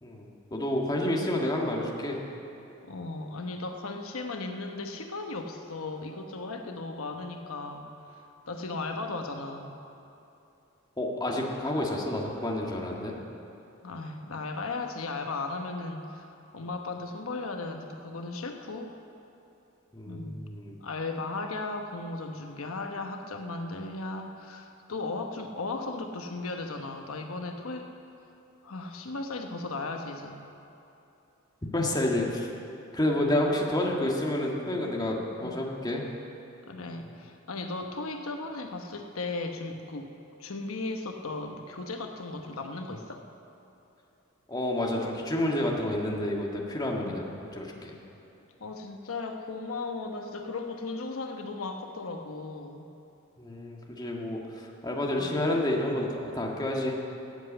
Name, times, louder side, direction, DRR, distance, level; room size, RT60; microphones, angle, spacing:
voice 1, 0.0-2.2 11.0-13.1 19.9-20.7 31.7-32.5 32.9-36.0 44.5-47.9 53.4-57.0, left 1 dB, 20° left, -1 dB, 1.6 m, -29 dB
voice 2, 2.8-7.9 8.5-9.7 13.8-16.3 16.5-19.0 20.0-20.4 20.7-27.9 28.6-30.4 33.2-33.5 35.4-35.6 36.7-40.1 40.4-43.2 47.0-47.2 48.6-52.9 55.2-55.4, left 3 dB, 80° left, 4 dB, 1.0 m, -36 dB
13.0 x 8.0 x 8.5 m, 2.9 s
head